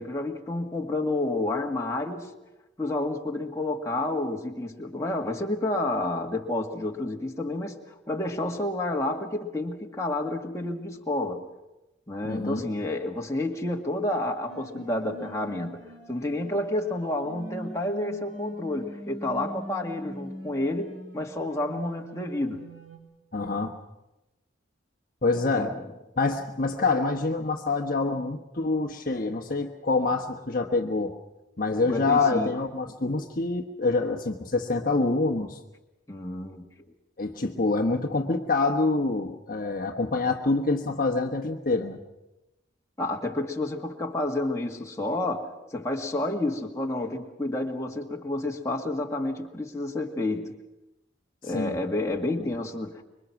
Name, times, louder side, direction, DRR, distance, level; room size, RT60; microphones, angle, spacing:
voice 1, 0.0-2.3 2.8-11.5 12.1-22.7 25.5-25.9 31.9-32.5 36.1-36.7 43.0-50.6 51.4-53.0, left 2 dB, 15° left, 0 dB, 2.0 m, -30 dB
voice 2, 12.2-12.6 23.3-23.7 25.2-25.7 26.2-31.1 31.6-35.6 37.2-42.0 51.4-51.8 52.4-52.5, left 3 dB, 45° left, 3 dB, 1.3 m, -26 dB
sound 1, 14.5-23.0, equal, 80° right, 4.5 m, -43 dB
26.0 x 23.5 x 6.0 m, 0.96 s
head